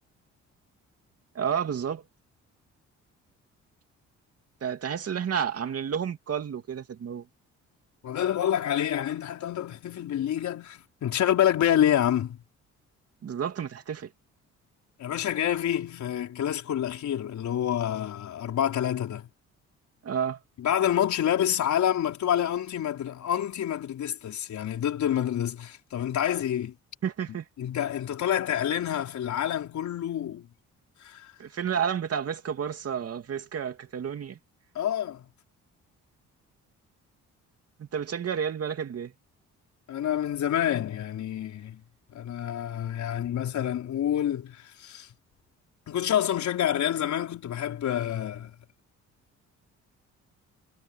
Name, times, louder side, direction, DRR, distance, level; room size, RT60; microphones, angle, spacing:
voice 1, 1.3-2.0 4.6-7.2 13.2-14.1 20.0-20.4 27.0-27.4 31.4-34.4 37.8-39.1, right 8 dB, 50° right, 2.6 m, -31 dB
voice 2, 8.0-12.4 15.0-19.3 20.6-26.7 27.6-30.5 31.0-31.3 34.7-35.2 39.9-41.8 42.1-45.1 45.9-48.5, left 10 dB, 70° left, 4.8 m, -27 dB
cardioid pair, 90°, 30 cm